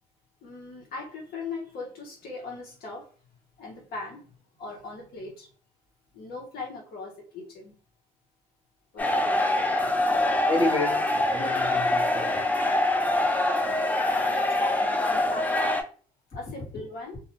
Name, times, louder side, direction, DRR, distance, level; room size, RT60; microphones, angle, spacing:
voice 1, 0.4-3.1 3.6-4.2 4.6-5.5 6.1-7.7 8.9-9.5 14.1-15.9 16.3-17.2, left 3 dB, 65° left, 0.9 m, -39 dB
sound 1, 9.0-15.8, left 1 dB, 10° left, 0.4 m, -24 dB
voice 2, 10.3-12.4, left 3 dB, 30° left, 1.1 m, -30 dB
2.5 x 2.1 x 2.8 m
cardioid pair, 110°, 17 cm